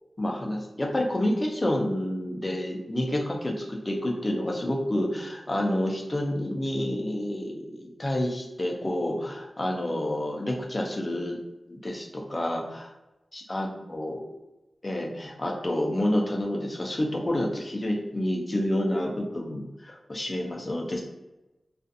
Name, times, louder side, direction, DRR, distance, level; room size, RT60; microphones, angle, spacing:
voice 1, 0.2-11.4 11.7-12.9 13.3-14.2 14.8-21.0, left 1 dB, 30° left, 0 dB, 0.5 m, -29 dB
2.4 x 2.4 x 2.6 m, 1.0 s
wide cardioid pair, 100°, 0 cm